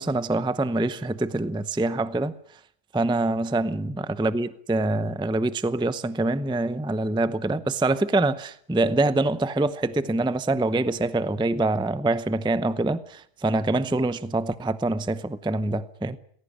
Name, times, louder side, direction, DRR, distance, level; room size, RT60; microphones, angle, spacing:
voice 1, 0.0-2.3 2.9-16.2, right 2 dB, 5° right, 0.7 m, -25 dB
20.5 x 17.5 x 9.9 m
omnidirectional pair, 1.4 m